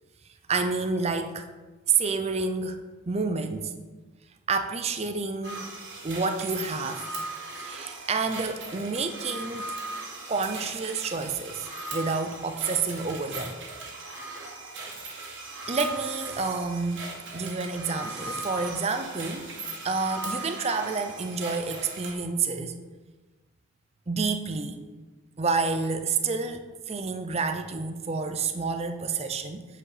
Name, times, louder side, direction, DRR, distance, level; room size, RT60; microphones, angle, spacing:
voice 1, 0.5-1.5 1.9-2.8 3.1-3.7 4.5-5.8 6.0-7.1 7.5-9.7 10.3-11.6 11.9-13.6 15.7-17.0 17.3-19.5 19.8-22.7 24.1-24.8 25.4-29.7, right 4 dB, 30° right, 7 dB, 0.5 m, -29 dB
sound 1, 5.4-22.1, right 2 dB, 55° right, 1.8 m, -38 dB
8.5 x 5.0 x 4.9 m, 1.2 s
head